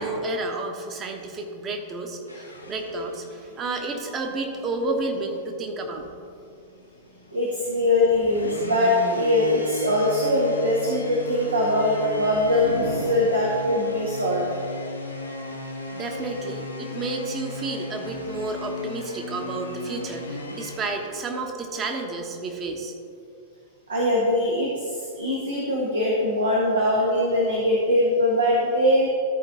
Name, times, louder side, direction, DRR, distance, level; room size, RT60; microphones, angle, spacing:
voice 1, 0.0-6.1 15.9-22.9, right 2 dB, 25° right, 3 dB, 1.2 m, -31 dB
sound 1, 2.3-21.2, left 2 dB, 85° left, 1.0 m, -36 dB
voice 2, 7.3-14.4 23.9-29.1, left 1 dB, 75° right, -4 dB, 1.4 m, -22 dB
13.5 x 4.9 x 3.8 m, 2.4 s
figure-of-eight pair, 95°, 0 cm